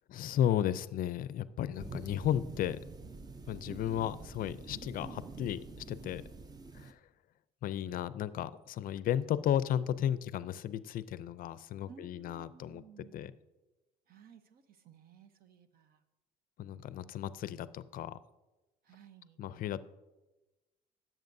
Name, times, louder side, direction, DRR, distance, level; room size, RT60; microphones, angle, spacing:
voice 1, 0.1-2.8 3.5-5.6 5.9-6.2 6.7-7.0 7.6-12.8 13.1-13.3 16.6-18.2 19.4-19.8, left 10 dB, 60° left, 16 dB, 0.4 m, -34 dB
sound 1, 1.8-6.9, right 4 dB, 25° right, 0.6 m, -47 dB
voice 2, 11.9-13.3 14.1-16.0 18.8-19.4, right 6 dB, 60° right, 10 dB, 0.9 m, -57 dB
16.0 x 7.3 x 2.6 m, 1.1 s
cardioid pair, 110°, 17 cm